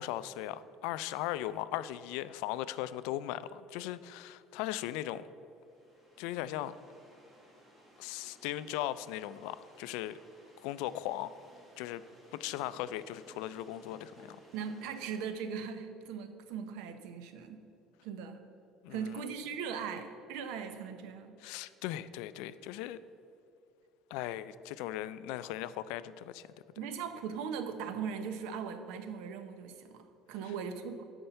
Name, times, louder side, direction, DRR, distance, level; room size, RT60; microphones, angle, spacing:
voice 1, 0.0-5.3 6.2-6.7 8.0-10.2 10.6-11.4 11.8-12.0 12.3-14.4 18.8-19.2 21.4-23.0 24.1-26.5, left 13 dB, 85° left, 15 dB, 0.3 m, -38 dB
sound 1, 5.5-15.2, right 1 dB, 15° right, 1.4 m, -60 dB
voice 2, 14.5-17.6 18.0-18.4 18.9-21.3 26.8-31.0, right 6 dB, 80° right, 9 dB, 0.8 m, -39 dB
10.0 x 4.4 x 6.7 m, 2.6 s
cardioid pair, 165°, 0 cm